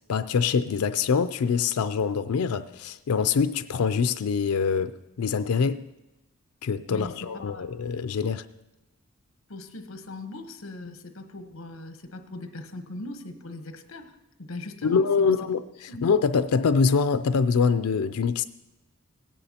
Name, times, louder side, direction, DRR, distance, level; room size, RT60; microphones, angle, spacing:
voice 1, 0.1-5.8 6.6-8.5 14.8-15.6 16.0-18.5, left 5 dB, 90° left, 0.4 m, -24 dB
voice 2, 6.9-7.6 9.5-15.5 15.9-16.0, left 2 dB, 65° left, 1.0 m, -40 dB
17.5 x 9.9 x 2.9 m
head